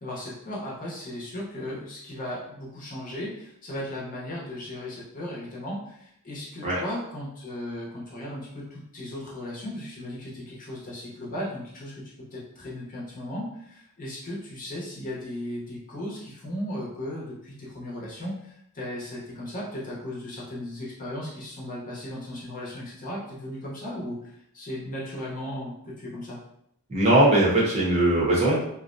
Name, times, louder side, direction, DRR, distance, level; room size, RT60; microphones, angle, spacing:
voice 1, 0.0-12.0 12.3-26.4, left 1 dB, 35° left, -5 dB, 0.7 m, -36 dB
voice 2, 26.9-28.6, right 1 dB, 30° right, -6 dB, 0.7 m, -20 dB
2.4 x 2.1 x 2.5 m, 0.74 s
head